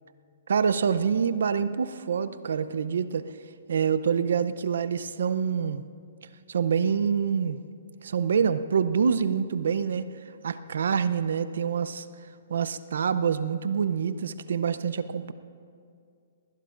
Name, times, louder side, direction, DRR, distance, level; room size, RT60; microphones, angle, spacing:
voice 1, 0.5-3.3 3.7-5.8 6.5-7.6 8.0-10.1 10.4-12.1 12.5-15.3, right 6 dB, 80° right, 13 dB, 0.6 m, -26 dB
20.0 x 20.0 x 2.6 m, 2.3 s
hypercardioid pair, 155°, 0 cm